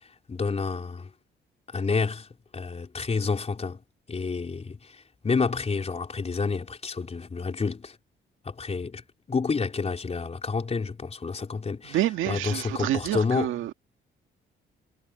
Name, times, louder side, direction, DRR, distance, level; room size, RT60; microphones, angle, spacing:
voice 1, 0.3-1.1 1.7-2.3 2.5-3.8 4.1-4.8 5.2-7.9 8.5-9.0 9.3-12.0 12.2-13.5, left 4 dB, 30° left, 4.0 m, -29 dB
voice 2, 11.9-13.7, right 13 dB, 90° right, 1.9 m, -28 dB
cardioid pair, 90°, 20 cm